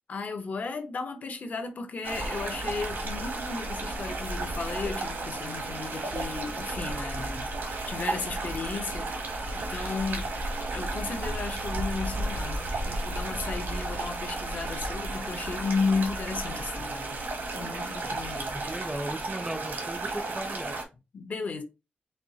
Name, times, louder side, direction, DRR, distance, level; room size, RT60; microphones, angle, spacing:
voice 1, 0.1-10.3 10.7-17.2 17.5-18.6 21.1-21.6, left 4 dB, 55° left, 0.7 m, -34 dB
sound 1, 2.0-20.8, right 2 dB, 70° right, 1.0 m, -33 dB
voice 2, 18.5-20.8, right 1 dB, 10° right, 0.4 m, -37 dB
4.3 x 2.7 x 2.7 m
wide cardioid pair, 170°, 3 cm